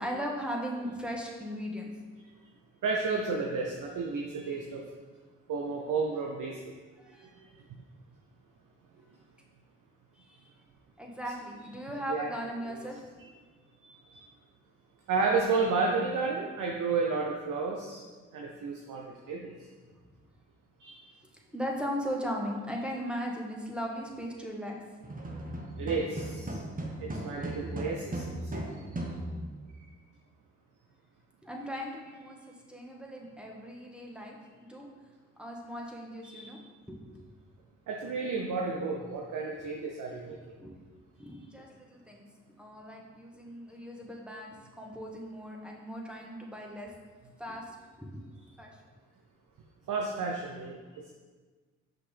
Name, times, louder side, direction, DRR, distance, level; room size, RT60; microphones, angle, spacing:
voice 1, 0.0-1.9 7.0-7.3 10.1-10.5 11.0-13.0 21.5-24.8 31.4-32.4 32.7-34.3 34.7-34.9 35.4-36.6 36.9-37.2 40.6-40.8 41.2-42.2 42.6-46.9 47.4-48.2 48.6-48.7, equal, 5° right, -1 dB, 1.4 m, -38 dB
voice 2, 2.8-4.8 5.5-6.5 12.1-12.3 12.6-12.7 15.1-18.0 18.3-19.0 19.3-19.5 20.8-21.0 25.8-26.4 27.0-28.8 36.2-36.5 37.9-40.4 49.9-50.8, right 4 dB, 65° right, 0 dB, 0.8 m, -31 dB
sound 1, 25.0-29.7, right 1 dB, 25° right, 1.2 m, -37 dB
5.8 x 5.2 x 3.4 m, 1.4 s
hypercardioid pair, 45°, 34 cm